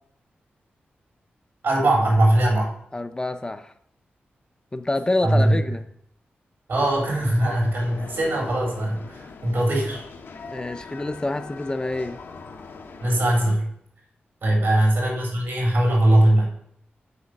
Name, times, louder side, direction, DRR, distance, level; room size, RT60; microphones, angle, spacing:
voice 1, 1.6-2.7 5.2-5.6 6.7-10.0 13.0-13.7 14.4-16.5, right 1 dB, 75° right, -1 dB, 3.4 m, -20 dB
voice 2, 2.9-3.7 4.7-5.9 10.5-12.2 14.5-14.8, left 2 dB, 20° left, 8 dB, 0.6 m, -27 dB
sound 1, 6.7-13.5, left 4 dB, 80° left, 1.1 m, -42 dB
7.0 x 5.0 x 6.4 m, 0.70 s
wide cardioid pair, 85°, 4 cm